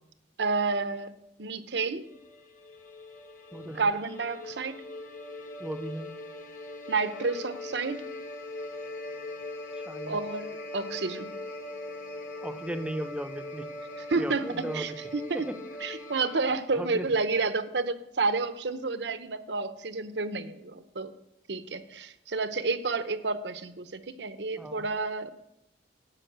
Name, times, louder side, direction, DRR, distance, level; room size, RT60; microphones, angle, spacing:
voice 1, 0.4-1.1 1.4-2.0 3.8-4.8 6.9-8.1 10.1-11.3 14.1-14.5 14.7-15.4 15.8-21.1 21.5-25.3, right 4 dB, 70° right, 12 dB, 0.8 m, -30 dB
sound 1, 2.0-16.4, left 2 dB, 45° left, 1.7 m, -41 dB
voice 2, 3.5-3.9 5.6-6.2 9.9-10.2 12.4-13.7 14.2-15.6 16.7-17.1 24.6-24.9, right 1 dB, 5° right, 8 dB, 0.7 m, -37 dB
12.5 x 5.9 x 8.0 m, 0.85 s
head